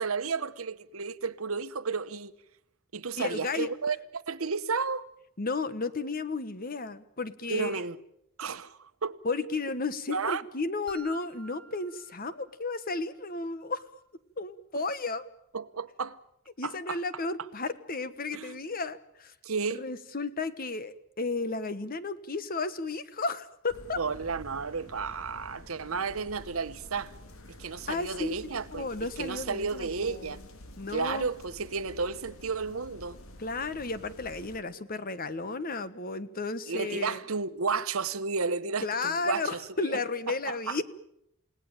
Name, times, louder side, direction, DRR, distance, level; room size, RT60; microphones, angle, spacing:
voice 1, 0.0-2.3 2.9-5.1 7.5-8.0 8.4-9.2 10.1-10.4 15.5-16.2 16.6-17.0 18.3-18.6 19.4-19.8 24.0-27.2 27.6-28.9 29.2-30.4 30.9-33.2 36.7-40.0 40.3-40.8, right 5 dB, 80° right, 1.1 m, -32 dB
voice 2, 3.2-3.7 5.4-7.8 9.2-13.8 14.4-15.2 16.6-19.3 19.7-24.0 27.9-28.3 28.7-30.4 30.8-31.3 33.4-37.2 38.8-40.8, left 3 dB, 45° left, 1.3 m, -33 dB
sound 1, 10.9-12.9, right 5 dB, 55° right, 4.0 m, -50 dB
sound 2, 23.7-34.6, left 1 dB, 75° left, 2.3 m, -49 dB
29.5 x 18.0 x 9.0 m
head